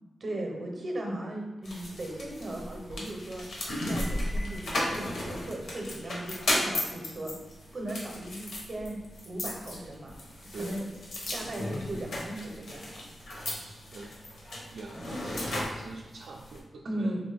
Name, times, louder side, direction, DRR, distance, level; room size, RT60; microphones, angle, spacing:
voice 1, 0.2-3.5 3.8-7.3 7.7-9.0 9.3-10.1 10.6-10.9 11.3-13.1 14.9-15.0 16.9-17.2, right 1 dB, 40° right, 1 dB, 0.6 m, -37 dB
sound 1, 1.6-16.6, left 1 dB, 70° left, 0.9 m, -35 dB
voice 2, 10.5-10.8 13.5-14.2 14.7-17.2, right 3 dB, 70° right, -1 dB, 0.3 m, -44 dB
4.1 x 3.0 x 3.4 m, 1.1 s
wide cardioid pair, 165°, 0 cm